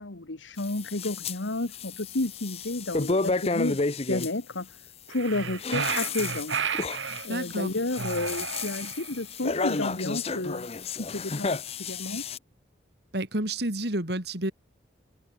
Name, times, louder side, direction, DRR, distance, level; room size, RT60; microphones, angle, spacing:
voice 1, 0.0-4.8 5.1-6.6 7.0-11.6 11.9-12.2, left 2 dB, 85° left, 1.7 m, -32 dB
sound 1, 0.6-1.4 1.7-4.3 5.4-12.4, left 3 dB, 35° left, 0.8 m, -32 dB
sound 2, 5.1-7.3 7.9-9.2, right 6 dB, 85° right, 1.6 m, -32 dB
voice 2, 7.3-7.7 13.1-14.5, right 1 dB, 60° right, 3.8 m, -29 dB
head